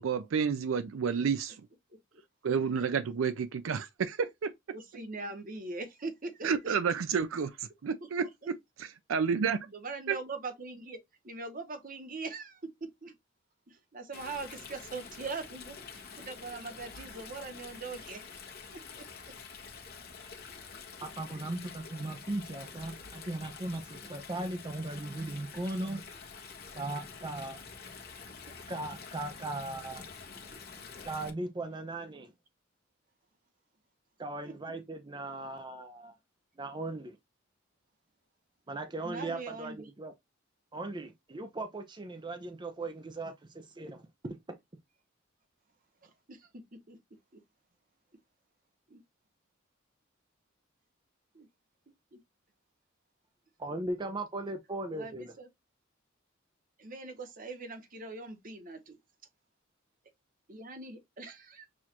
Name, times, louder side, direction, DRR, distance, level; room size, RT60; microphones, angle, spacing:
voice 1, 0.0-1.6 2.4-4.5 6.4-9.6 10.1-10.2, right 6 dB, 80° right, 0.4 m, -30 dB
voice 2, 4.7-6.8 8.2-8.3 9.7-11.0 11.2-13.1 13.7-18.2 18.7-19.3 34.4-34.5 39.0-39.9 46.0-47.0 47.3-47.4 48.9-49.0 51.3-51.5 54.9-55.5 56.8-59.0 60.5-61.7, right 3 dB, 45° right, 1.0 m, -42 dB
Stream, 14.1-31.3, left 5 dB, 50° left, 1.0 m, -47 dB
voice 3, 21.0-26.1 26.7-27.6 28.7-30.1 31.0-32.3 34.2-36.1 36.6-37.2 38.7-40.1 40.7-44.6 53.6-55.3, right 2 dB, 25° right, 0.5 m, -38 dB
6.2 x 2.5 x 2.8 m
head